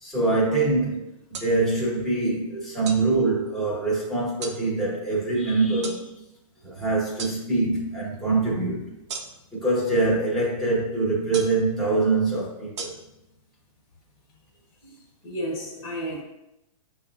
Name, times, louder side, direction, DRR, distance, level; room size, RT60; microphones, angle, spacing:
voice 1, 0.0-6.1 6.6-8.9 9.5-12.9, right 3 dB, ahead, 1.1 m, -24 dB
sound 1, 1.3-1.5 2.9-3.0 4.4-4.6 5.8-6.0 7.2-7.4 9.1-9.5 11.3-11.6 12.8-12.9, right 4 dB, 55° right, 0.6 m, -34 dB
voice 2, 15.2-16.2, equal, 45° left, 1.3 m, -32 dB
7.1 x 2.4 x 2.5 m
hypercardioid pair, 160°, 18 cm